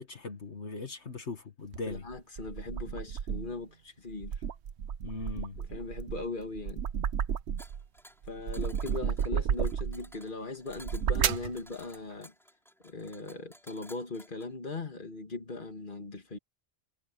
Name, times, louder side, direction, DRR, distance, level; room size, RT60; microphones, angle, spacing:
voice 1, 0.0-2.1 5.0-5.6 8.8-8.9, left 3 dB, 75° left, 2.1 m, -39 dB
sound 1, 1.7-3.6 4.1-7.8 8.2-10.1 10.7-11.5, right 8 dB, 70° right, 1.1 m, -32 dB
voice 2, 1.9-4.3 5.6-6.8 8.3-12.3 12.8-16.4, left 3 dB, 45° left, 2.5 m, -39 dB
sound 2, 7.6-14.5, equal, ahead, 3.5 m, -55 dB
omnidirectional pair, 1.2 m